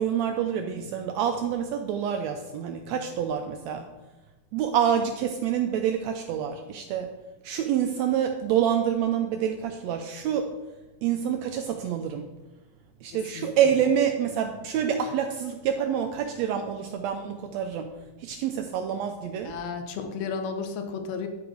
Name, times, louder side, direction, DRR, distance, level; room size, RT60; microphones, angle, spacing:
voice 1, 0.0-3.9 4.5-7.1 7.4-10.5 11.0-12.3 13.0-17.9 18.2-19.5, right 8 dB, 85° right, 6 dB, 1.5 m, -27 dB
voice 2, 19.4-21.3, left 5 dB, 70° left, 6 dB, 1.8 m, -33 dB
10.5 x 4.8 x 5.0 m, 1.2 s
omnidirectional pair, 3.7 m